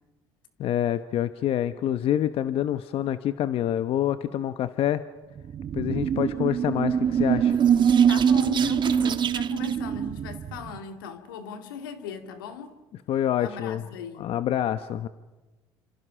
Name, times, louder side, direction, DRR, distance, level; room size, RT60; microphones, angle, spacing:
voice 1, 0.6-5.0 5.7-7.6 13.1-13.8 14.2-15.1, left 11 dB, 60° left, 0.9 m, -26 dB
sound 1, 5.4-10.8, right 8 dB, 45° right, 1.2 m, -23 dB
voice 2, 8.1-12.7 13.4-14.3, left 6 dB, 90° left, 2.2 m, -38 dB
29.0 x 27.0 x 5.8 m
hypercardioid pair, 70°, 11 cm